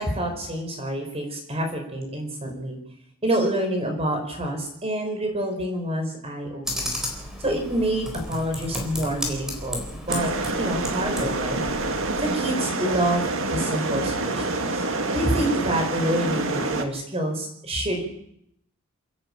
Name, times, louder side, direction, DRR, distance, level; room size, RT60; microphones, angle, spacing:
voice 1, 0.0-2.8 3.2-7.0 7.4-10.3 10.5-11.6 12.2-18.0, right 1 dB, 25° right, 4 dB, 5.2 m, -27 dB
Computer keyboard, 6.6-12.3, left 1 dB, 5° right, 3.9 m, -33 dB
sound 1, 10.1-16.9, right 2 dB, 60° right, 2.0 m, -27 dB
29.0 x 10.5 x 8.9 m, 0.75 s
head